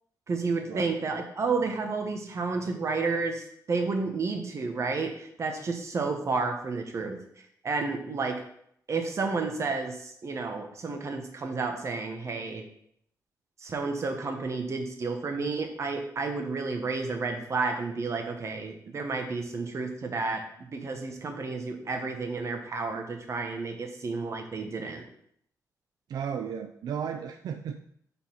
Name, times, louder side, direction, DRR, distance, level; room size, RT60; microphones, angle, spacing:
voice 1, 0.3-7.2 7.6-8.4 8.9-12.6 13.6-25.0, right 4 dB, 45° right, 5 dB, 1.4 m, -31 dB
voice 2, 26.1-27.8, right 7 dB, 80° right, 7 dB, 0.4 m, -34 dB
7.0 x 4.2 x 5.7 m, 0.69 s
cardioid pair, 110°, 7 cm